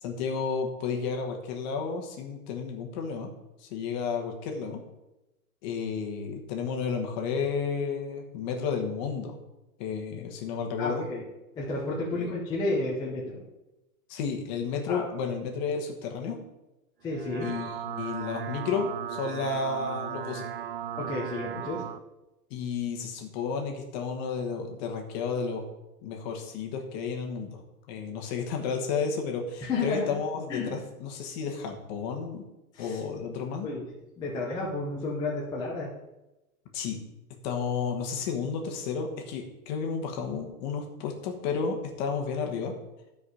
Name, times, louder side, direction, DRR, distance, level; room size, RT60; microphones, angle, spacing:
voice 1, 0.0-3.3 3.6-4.8 5.6-9.4 9.8-11.1 12.1-12.3 14.1-16.4 17.4-20.5 22.5-25.7 26.0-27.6 27.9-32.4 32.8-33.7 36.7-37.0 37.4-42.7, left 5 dB, 30° left, 3 dB, 1.4 m, -32 dB
voice 2, 10.8-11.2 11.6-13.4 14.9-15.1 17.0-17.5 21.0-21.8 29.6-30.2 30.5-30.8 32.7-33.0 33.6-33.8 34.2-35.9, left 2 dB, 10° left, -5 dB, 0.8 m, -31 dB
sound 1, 17.0-22.0, right 9 dB, 40° right, 0.4 m, -36 dB
12.5 x 4.9 x 4.9 m, 0.98 s
hypercardioid pair, 160°, 46 cm